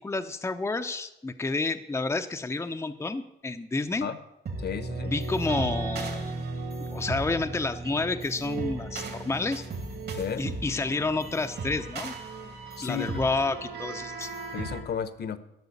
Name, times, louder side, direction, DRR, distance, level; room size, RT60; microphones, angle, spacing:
voice 1, 0.0-4.1 5.1-6.2 6.9-9.6 10.4-12.1 12.8-14.3, left 3 dB, 15° left, 7 dB, 0.7 m, -30 dB
sound 1, 4.5-14.8, right 3 dB, 55° right, 2.6 m, -35 dB
voice 2, 4.6-5.1 10.1-10.5 12.8-13.3 14.5-15.4, left 7 dB, 55° left, 13 dB, 1.0 m, -33 dB
12.0 x 6.2 x 8.5 m, 0.88 s
cardioid pair, 90°, 20 cm